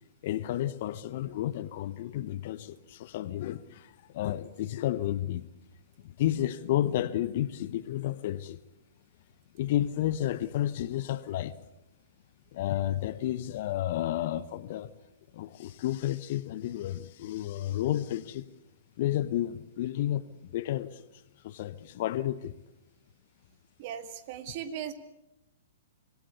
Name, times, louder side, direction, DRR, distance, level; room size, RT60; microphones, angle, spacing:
voice 1, 0.2-5.5 6.0-8.6 9.5-11.6 12.5-14.9 15.3-18.5 19.0-21.0 21.4-22.5, left 13 dB, 50° left, 1.0 m, -31 dB
voice 2, 23.8-24.9, right 9 dB, 45° right, 2.0 m, -38 dB
25.0 x 17.5 x 8.3 m
figure-of-eight pair, 110°, 0 cm